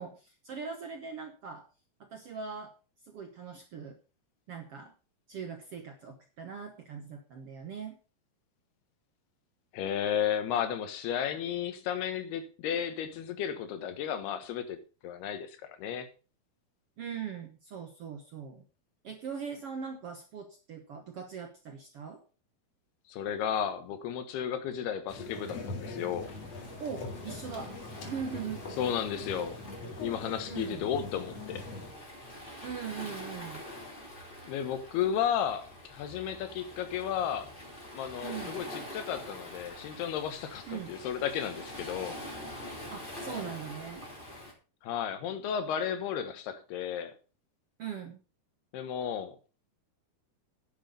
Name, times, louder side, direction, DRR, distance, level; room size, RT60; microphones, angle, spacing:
voice 1, 0.0-1.6 2.0-2.7 3.1-4.0 4.5-4.9 5.3-8.0 17.0-18.7 19.0-22.2 26.8-28.6 30.5-30.9 32.6-33.6 38.2-38.6 40.7-40.9 42.9-44.1 47.8-48.2, right 6 dB, 70° right, 5 dB, 1.3 m, -41 dB
voice 2, 9.7-14.8 15.0-16.1 23.1-26.3 28.8-29.6 30.0-31.6 34.5-37.5 37.9-42.2 44.8-47.1 48.7-49.4, left 9 dB, 85° left, 10 dB, 3.4 m, -33 dB
sound 1, 25.1-31.9, left 2 dB, 45° left, 2.8 m, -42 dB
Waves surf, 26.2-44.5, left 1 dB, 15° left, 3.0 m, -45 dB
10.5 x 8.3 x 5.3 m, 0.34 s
omnidirectional pair, 4.5 m